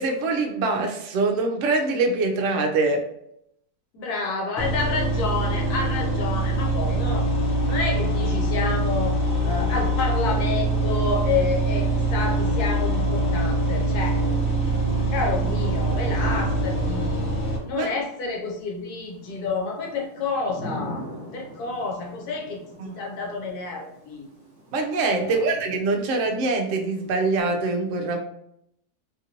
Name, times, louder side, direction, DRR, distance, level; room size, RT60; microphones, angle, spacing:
voice 1, 0.0-3.1 17.7-17.9 22.8-23.0 24.7-28.2, right 3 dB, 65° right, 3 dB, 0.8 m, -24 dB
voice 2, 3.9-7.3 7.6-9.2 9.4-14.2 15.1-17.3 17.6-21.0 21.3-24.3 25.2-25.5, left 4 dB, 75° left, 0 dB, 1.1 m, -29 dB
sound 1, 4.6-17.6, right 2 dB, 50° left, 1.0 m, -24 dB
Thunder / Rain, 14.7-27.4, left 1 dB, 25° right, 0.9 m, -44 dB
2.9 x 2.6 x 2.8 m, 0.75 s
omnidirectional pair, 1.7 m